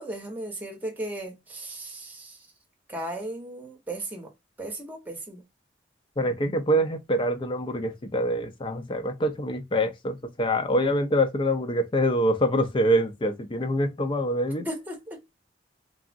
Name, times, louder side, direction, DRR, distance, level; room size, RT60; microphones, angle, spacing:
voice 1, 0.0-2.4 2.9-4.3 4.6-5.4 14.6-15.2, right 1 dB, 10° right, 0.8 m, -36 dB
voice 2, 6.2-14.7, equal, 30° left, 0.5 m, -25 dB
3.5 x 2.0 x 2.4 m
head